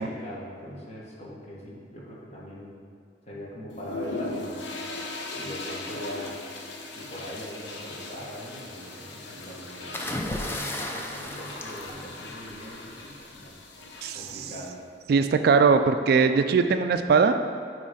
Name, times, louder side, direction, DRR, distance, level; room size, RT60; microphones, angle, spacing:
voice 1, 0.0-2.7 3.2-4.6 5.3-6.4 6.9-10.2 10.4-13.5 14.1-14.7, equal, 35° left, -5 dB, 1.4 m, -41 dB
sound 1, 3.7-14.7, left 2 dB, 75° left, 0.8 m, -39 dB
sound 2, 9.9-12.7 13.9-14.2, left 1 dB, 15° left, 0.5 m, -34 dB
voice 2, 15.1-17.4, right 5 dB, 55° right, 8 dB, 0.3 m, -20 dB
9.5 x 3.2 x 5.0 m, 2.4 s
head